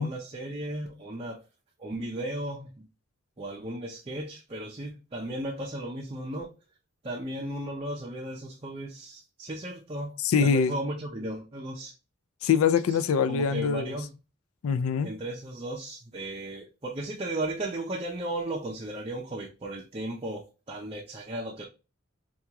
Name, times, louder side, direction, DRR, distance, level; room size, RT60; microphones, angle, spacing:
voice 1, 0.0-1.4 1.8-2.9 3.4-6.5 7.0-10.2 10.4-11.9 13.3-14.1 15.0-21.7, right 1 dB, 30° right, 0.5 m, -35 dB
voice 2, 10.2-10.7 12.4-13.9 14.6-15.1, left 6 dB, 90° left, 0.4 m, -24 dB
4.7 x 2.4 x 2.8 m
head